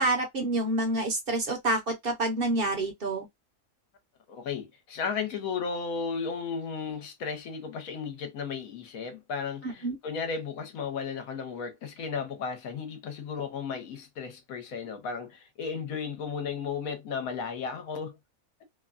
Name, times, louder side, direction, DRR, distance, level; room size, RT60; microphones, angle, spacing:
voice 1, 0.0-3.3 9.6-10.0, right 2 dB, 45° right, 0.8 m, -28 dB
voice 2, 4.3-18.2, left 5 dB, 70° left, 1.3 m, -34 dB
3.0 x 2.2 x 2.4 m
omnidirectional pair, 1.6 m